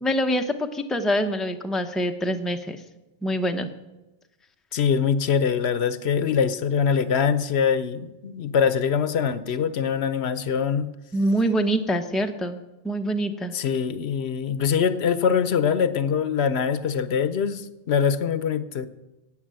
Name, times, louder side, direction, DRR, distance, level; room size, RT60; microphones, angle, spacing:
voice 1, 0.0-2.8 3.2-3.7 11.1-13.5, equal, ahead, 5 dB, 0.7 m, -25 dB
voice 2, 4.7-10.9 13.5-18.9, left 7 dB, 75° left, 13 dB, 1.0 m, -23 dB
12.0 x 8.7 x 7.6 m, 1.0 s
omnidirectional pair, 1.1 m